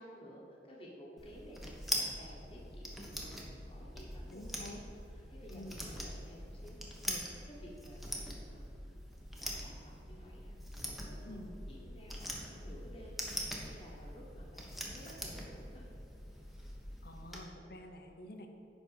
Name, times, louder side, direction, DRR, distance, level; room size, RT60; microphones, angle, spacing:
voice 1, 0.0-3.4 3.7-4.7 5.1-6.9 7.2-8.9 9.3-10.5 11.1-15.8, equal, 30° left, -4 dB, 1.3 m, -54 dB
sound 1, 1.2-17.4, equal, ahead, 1.0 m, -43 dB
voice 2, 4.3-4.8 5.5-5.8 7.1-7.3 11.3-11.5 17.0-18.5, left 1 dB, 60° left, 5 dB, 0.9 m, -48 dB
10.0 x 4.2 x 6.5 m, 3.0 s
head